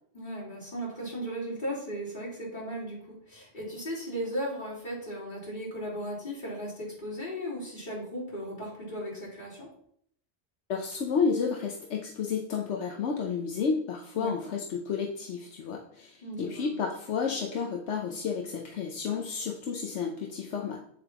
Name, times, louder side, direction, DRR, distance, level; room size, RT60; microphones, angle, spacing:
voice 1, 0.1-9.7 14.1-14.3 16.2-16.8, equal, 45° left, -7 dB, 4.1 m, -36 dB
voice 2, 10.7-20.8, left 5 dB, 80° left, 1 dB, 1.1 m, -31 dB
8.8 x 7.4 x 3.0 m, 0.68 s
omnidirectional pair, 1.2 m